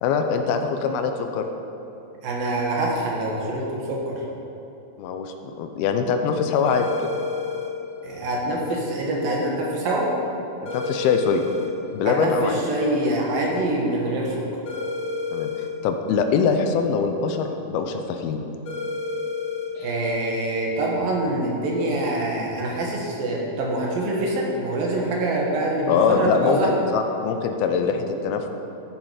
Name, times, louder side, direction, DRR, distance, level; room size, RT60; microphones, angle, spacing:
voice 1, 0.0-1.5 5.0-7.1 10.6-11.4 11.9-12.6 15.3-18.4 19.8-19.9 25.9-28.5, left 5 dB, 80° left, 6 dB, 2.4 m, -23 dB
voice 2, 2.2-4.2 8.0-10.1 12.0-14.4 19.8-26.8, right 1 dB, 65° right, -2 dB, 3.2 m, -25 dB
sound 1, 6.7-7.7 10.7-11.7 14.7-15.7 18.7-19.7, left 4 dB, 45° left, 2.8 m, -29 dB
14.0 x 7.3 x 5.0 m, 2.9 s
omnidirectional pair, 4.6 m